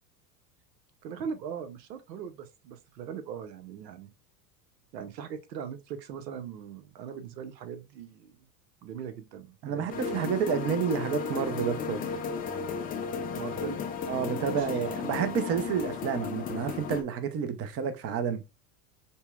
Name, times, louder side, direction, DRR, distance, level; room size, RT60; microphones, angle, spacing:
voice 1, 1.0-4.1 4.9-8.5 8.8-10.3 13.3-13.9 14.3-14.7, right 7 dB, 85° right, 0.8 m, -40 dB
voice 2, 9.6-12.2 14.1-18.4, right 7 dB, 30° right, 0.6 m, -30 dB
sound 1, 9.9-17.0, left 6 dB, 20° left, 0.3 m, -34 dB
5.3 x 2.1 x 2.2 m
hypercardioid pair, 90°, 49 cm